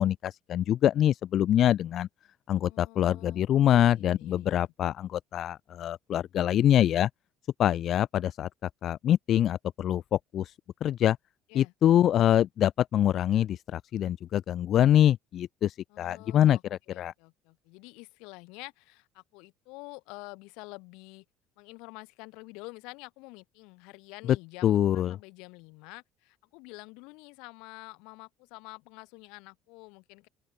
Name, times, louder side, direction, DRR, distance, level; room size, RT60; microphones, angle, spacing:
voice 1, 0.0-2.1 2.5-7.1 7.6-10.5 10.8-11.2 11.5-17.1 24.6-25.2, left 11 dB, 45° left, 0.5 m, -25 dB
voice 2, 2.5-4.7 11.5-11.7 15.9-16.6 16.9-21.2 21.6-30.3, left 27 dB, 85° left, 2.1 m, -48 dB
open air
cardioid pair, 150°, 0 cm